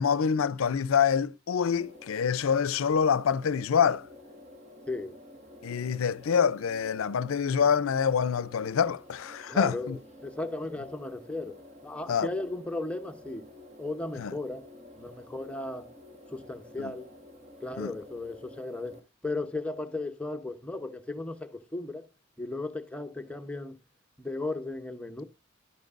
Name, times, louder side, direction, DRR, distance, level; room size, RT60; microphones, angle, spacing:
voice 1, 0.0-4.1 5.6-10.0 12.1-12.3 14.2-14.3 16.8-16.9 17.8-17.9, left 7 dB, 85° left, 0.5 m, -26 dB
sound 1, 1.6-19.0, left 1 dB, 30° right, 1.2 m, -51 dB
voice 2, 4.9-5.2 9.5-13.5 13.8-14.7 15.0-15.9 16.3-17.1 17.6-22.1 22.4-23.8 24.2-25.2, left 2 dB, 5° left, 0.8 m, -36 dB
11.5 x 9.1 x 2.5 m
head